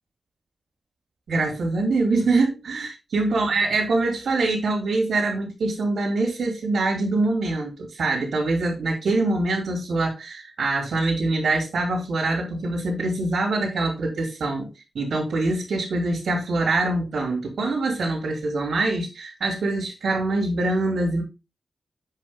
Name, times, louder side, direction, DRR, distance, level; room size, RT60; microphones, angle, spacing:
voice 1, 1.3-14.7 14.9-21.2, right 2 dB, 85° right, -2 dB, 3.2 m, -24 dB
8.5 x 5.4 x 3.6 m, 0.26 s
wide cardioid pair, 165°, 0 cm